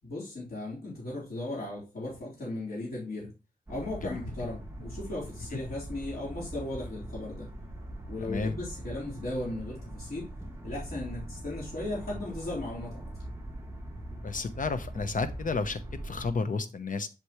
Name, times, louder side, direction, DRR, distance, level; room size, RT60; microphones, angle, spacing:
voice 1, 0.0-3.3 3.7-7.5 8.1-10.3 10.6-13.0, left 2 dB, 85° left, -7 dB, 3.9 m, -36 dB
sound 1, 3.7-16.3, right 1 dB, 15° right, 1.9 m, -42 dB
voice 2, 8.2-8.6 14.2-17.1, left 4 dB, 60° left, 10 dB, 0.9 m, -32 dB
8.2 x 6.9 x 3.1 m, 0.29 s
wide cardioid pair, 125°, 15 cm